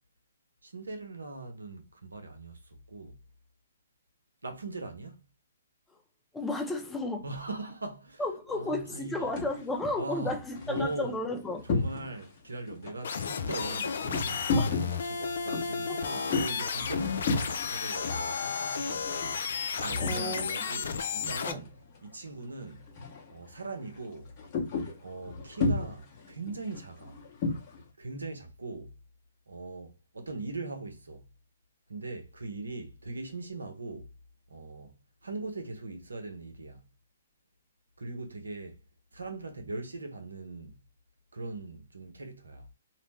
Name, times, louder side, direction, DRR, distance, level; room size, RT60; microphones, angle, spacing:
voice 1, 0.6-3.2 4.4-5.2 7.2-8.2 8.5-9.3 10.0-10.4 10.7-11.2 11.6-19.3 19.8-21.7 22.0-22.9 23.3-24.3 25.0-27.2 28.0-29.0 29.5-31.3 31.9-34.1 34.5-35.0 35.2-36.9 38.0-38.8 39.1-40.8 41.3-42.7, right 3 dB, 85° right, 0.8 m, -40 dB
voice 2, 6.3-7.3 8.2-11.6 14.6-14.7 18.9-19.0 19.7-20.6 21.4-21.6, left 2 dB, 10° left, 0.7 m, -33 dB
sound 1, 9.2-9.6 10.1-12.4 12.7-20.6 20.8-22.0 22.2-22.5 22.9-23.3 23.6-27.8, left 3 dB, 40° left, 1.0 m, -34 dB
sound 2, 13.0-21.5, left 6 dB, 65° left, 0.4 m, -33 dB
2.5 x 2.0 x 3.3 m
hypercardioid pair, 135°, 0 cm